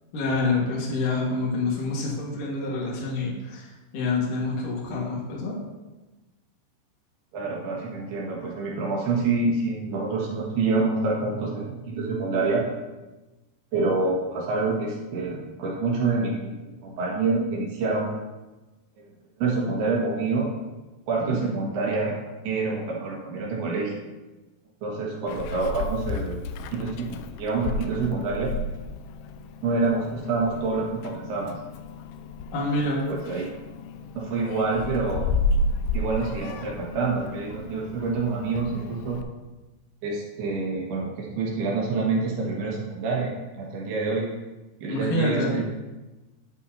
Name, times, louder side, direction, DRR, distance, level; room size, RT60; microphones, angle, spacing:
voice 1, 0.1-5.6 21.2-21.4 32.5-33.0 44.9-45.6, left 2 dB, 55° left, -4 dB, 2.8 m, -27 dB
voice 2, 7.3-12.6 13.7-16.5 16.8-18.1 19.0-19.1 19.4-20.5 21.1-22.1 22.4-23.9 24.8-26.4 26.7-28.5 29.6-31.5 33.1-33.4 34.2-35.2 35.9-39.2 40.0-43.3 43.6-44.3 44.8-45.7, right 3 dB, 70° right, -3 dB, 3.4 m, -27 dB
Meow, 25.3-39.2, left 2 dB, 80° left, 2.6 m, -32 dB
12.0 x 8.3 x 2.8 m, 1.1 s
omnidirectional pair, 5.2 m